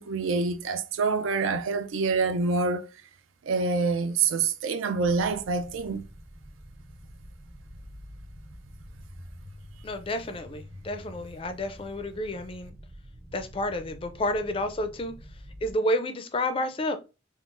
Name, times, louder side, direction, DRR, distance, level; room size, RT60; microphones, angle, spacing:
voice 1, 0.0-2.9 3.5-6.0, right 4 dB, 80° right, 0.4 m, -26 dB
sound 1, 5.0-15.7, equal, 30° right, 0.5 m, -47 dB
voice 2, 9.8-12.8 13.3-15.1 15.6-17.0, left 1 dB, 25° left, 0.3 m, -30 dB
3.7 x 2.0 x 2.4 m
head